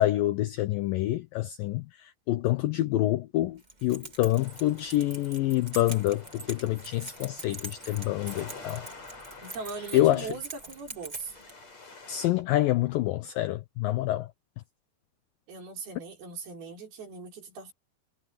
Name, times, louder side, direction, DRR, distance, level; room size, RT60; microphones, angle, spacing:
voice 1, 0.0-8.9 9.9-10.3 12.1-14.3, left 15 dB, 90° left, 2.0 m, -27 dB
Keys jangling, 3.6-11.5, right 2 dB, 15° right, 1.6 m, -44 dB
sound 1, 4.3-12.3, left 3 dB, 40° left, 8.6 m, -48 dB
voice 2, 9.4-11.4 15.5-17.7, right 4 dB, 65° right, 6.3 m, -40 dB
omnidirectional pair, 4.9 m